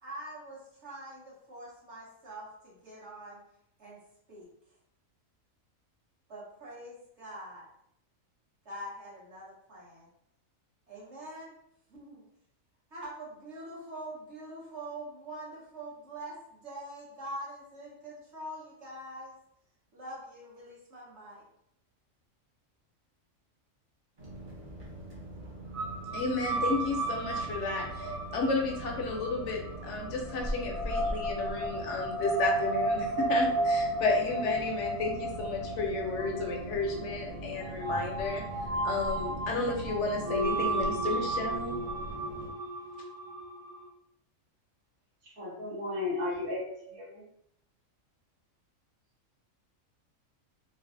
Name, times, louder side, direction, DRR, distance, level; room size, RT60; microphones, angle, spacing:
voice 1, 0.0-3.4 3.8-4.0 4.3-4.5 6.3-7.6 8.6-10.1 10.9-11.5 11.9-12.2 12.9-19.3 19.9-21.4, right 1 dB, 55° right, -6 dB, 1.4 m, -44 dB
sound 1, 24.2-42.5, right 1 dB, 35° right, 0.5 m, -42 dB
sound 2, 25.7-43.9, right 1 dB, 15° right, 0.8 m, -33 dB
voice 2, 26.1-38.4 38.8-41.8, left 3 dB, 70° left, 1 dB, 0.8 m, -32 dB
voice 3, 45.4-47.2, left 2 dB, 85° right, -5 dB, 1.5 m, -34 dB
3.1 x 2.3 x 2.5 m, 0.74 s
omnidirectional pair, 1.4 m